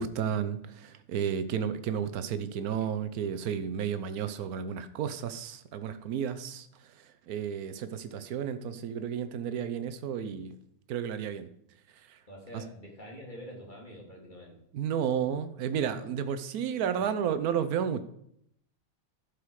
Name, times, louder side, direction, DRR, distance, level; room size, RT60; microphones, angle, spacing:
voice 1, 0.0-6.7 7.0-10.6 10.9-11.5 12.1-12.2 12.5-12.6 14.7-18.0, right 8 dB, 80° right, 11 dB, 1.3 m, -32 dB
voice 2, 12.3-14.6 16.9-17.1, equal, 30° left, -1 dB, 2.8 m, -46 dB
11.5 x 6.7 x 4.7 m, 0.73 s
omnidirectional pair, 1.6 m